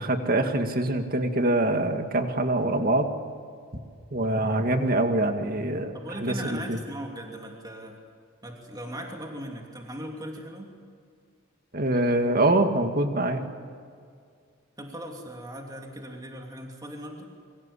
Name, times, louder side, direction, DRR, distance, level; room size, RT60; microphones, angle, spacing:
voice 1, 0.0-3.1 4.1-5.9 6.2-6.8 11.7-13.4, right 1 dB, 40° right, 5 dB, 2.2 m, -24 dB
voice 2, 5.9-8.0 8.4-10.7 14.8-17.2, right 1 dB, 20° right, 1 dB, 2.9 m, -38 dB
28.5 x 24.0 x 8.6 m, 2.2 s
head